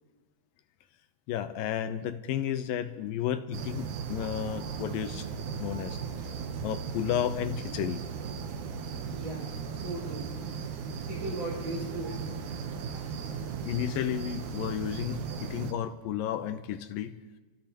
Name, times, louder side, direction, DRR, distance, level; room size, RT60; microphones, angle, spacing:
voice 1, 1.3-5.3 5.6-8.0 13.7-17.2, left 10 dB, 80° left, 10 dB, 2.3 m, -32 dB
sound 1, 3.5-15.7, right 6 dB, 70° right, 2.0 m, -37 dB
voice 2, 9.1-10.3 11.1-12.2 12.9-13.0, right 1 dB, 35° right, -4 dB, 6.4 m, -38 dB
28.0 x 15.0 x 3.0 m, 1.2 s
omnidirectional pair, 4.3 m